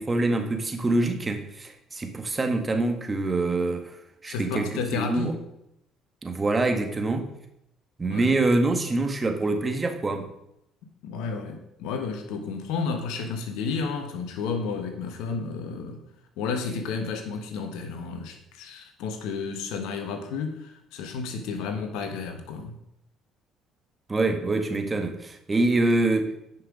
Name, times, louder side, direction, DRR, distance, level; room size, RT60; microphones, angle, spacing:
voice 1, 0.0-4.0 4.2-5.4 6.2-7.3 8.0-10.3 24.1-26.3, right 2 dB, 25° right, 1.6 m, -25 dB
voice 2, 4.3-5.4 8.0-8.3 11.0-16.0 16.4-22.8, left 5 dB, 75° left, 1.4 m, -32 dB
10.0 x 5.8 x 5.0 m
hypercardioid pair, 65°, 0 cm